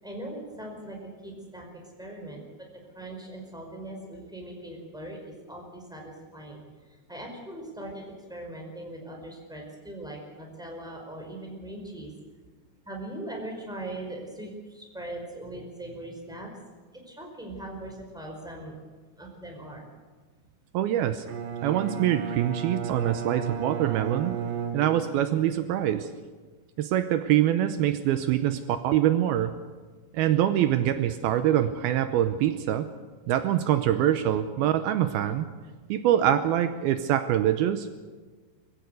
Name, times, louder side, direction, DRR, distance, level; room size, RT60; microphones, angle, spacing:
voice 1, 0.0-2.4 2.9-12.1 12.8-16.5 17.1-18.8 19.2-19.9, right 1 dB, ahead, 1 dB, 4.4 m, -40 dB
voice 2, 20.7-21.3 21.6-24.4 24.7-26.1 26.8-29.5 30.1-32.9 33.3-35.5 35.9-37.9, right 11 dB, 90° right, 10 dB, 2.1 m, -24 dB
Bowed string instrument, 21.3-25.5, right 6 dB, 60° right, 2.8 m, -33 dB
24.0 x 15.5 x 8.2 m, 1.4 s
omnidirectional pair, 5.4 m